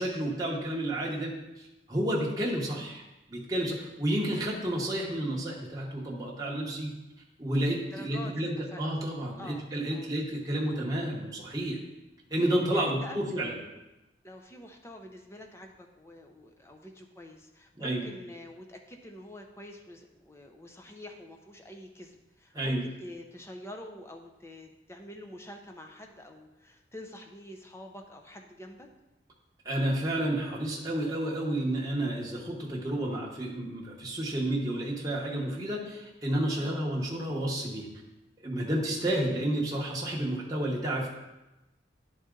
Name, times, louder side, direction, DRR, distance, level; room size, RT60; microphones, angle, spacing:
voice 1, 0.0-3.0 3.3-6.9 7.4-11.8 12.3-13.5 17.8-18.1 22.5-22.9 29.6-37.9 38.4-41.1, right 1 dB, 20° right, -4 dB, 1.0 m, -31 dB
voice 2, 7.7-8.8 9.4-10.1 12.7-13.4 14.2-28.9 36.6-36.8 38.8-39.2, left 1 dB, 15° left, 3 dB, 0.6 m, -47 dB
10.0 x 4.1 x 3.8 m, 1.0 s
head